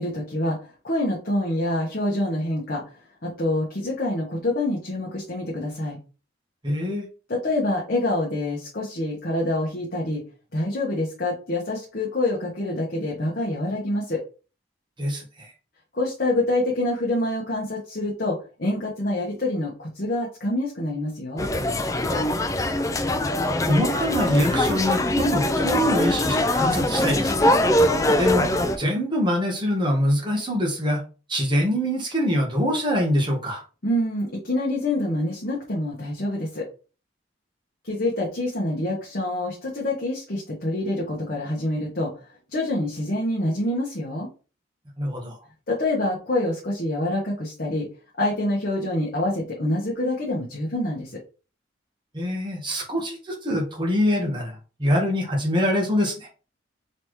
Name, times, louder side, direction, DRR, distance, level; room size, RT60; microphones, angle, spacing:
voice 1, 0.0-2.8 3.2-6.0 7.3-10.2 10.5-14.2 15.9-21.5 33.8-36.6 37.8-42.1 42.5-44.3 45.7-47.9 48.2-51.2, left 1 dB, 50° left, -3 dB, 1.1 m, -26 dB
voice 2, 6.6-7.1 15.0-15.5 22.0-22.3 23.6-27.5 28.2-28.5 28.8-31.0 31.3-33.6 45.0-45.3 52.1-56.3, equal, 25° right, -1 dB, 1.3 m, -24 dB
sound 1, 21.4-28.8, left 1 dB, 15° left, 0.3 m, -22 dB
4.0 x 3.4 x 3.1 m, 0.35 s
head